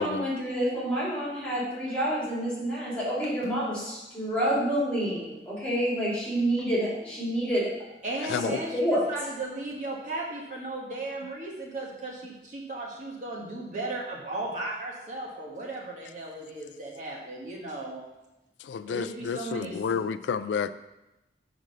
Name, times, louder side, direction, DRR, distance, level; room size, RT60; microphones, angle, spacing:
voice 1, 0.0-7.7 8.4-9.0, equal, 5° left, -7 dB, 3.2 m, -28 dB
voice 2, 8.0-18.0 18.9-19.8, right 2 dB, 45° right, -3 dB, 1.5 m, -36 dB
voice 3, 18.6-20.7, left 6 dB, 90° left, 13 dB, 0.3 m, -30 dB
6.3 x 5.1 x 6.6 m, 0.99 s
head